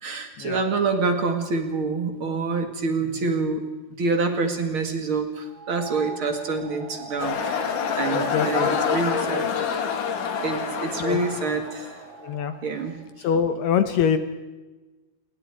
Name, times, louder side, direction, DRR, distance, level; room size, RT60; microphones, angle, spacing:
voice 1, 0.0-3.6 4.0-9.5 10.4-12.0 12.6-12.9, right 3 dB, 60° right, 6 dB, 1.3 m, -26 dB
sound 1, 5.4-13.1, right 4 dB, 45° right, 1.5 m, -40 dB
sound 2, 7.2-12.0, left 7 dB, 50° left, 2.8 m, -27 dB
voice 2, 8.1-8.7 11.0-11.2 12.2-12.6 13.2-14.2, left 7 dB, 70° left, 10 dB, 2.6 m, -24 dB
29.0 x 23.0 x 4.8 m, 1.2 s
omnidirectional pair, 5.9 m